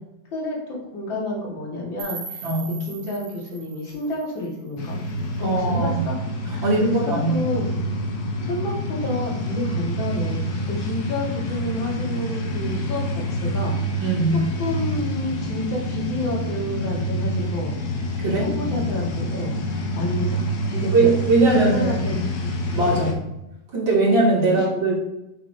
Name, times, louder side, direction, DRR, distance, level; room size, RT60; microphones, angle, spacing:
voice 1, 0.3-2.5 2.8-5.0 5.4-6.1 6.5-6.7 6.9-7.7 8.4-13.7 14.6-17.7 18.4-21.1 21.5-22.5 22.9-23.1 24.5-24.6, left 1 dB, 80° left, -4 dB, 2.9 m, -30 dB
sound 1, 2.0-5.0, right 5 dB, 50° right, 1.6 m, -39 dB
voice 2, 2.4-2.8 5.4-6.0 6.6-7.5 14.0-14.4 18.2-18.5 20.9-22.1 22.7-23.1 23.7-25.1, right 2 dB, 90° right, -5 dB, 3.3 m, -20 dB
sound 2, 4.8-23.1, equal, 60° left, 1.5 m, -27 dB
7.5 x 6.7 x 2.8 m, 0.89 s
omnidirectional pair, 2.1 m